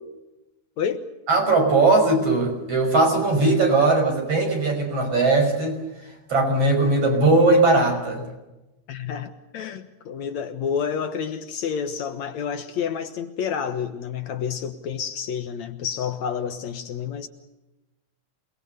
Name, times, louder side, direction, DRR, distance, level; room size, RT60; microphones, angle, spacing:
voice 1, 1.3-5.8 6.3-8.2, right 2 dB, 50° right, 6.9 m, -19 dB
voice 2, 8.9-17.3, left 7 dB, 65° left, 2.4 m, -29 dB
28.0 x 20.5 x 6.8 m
omnidirectional pair, 3.6 m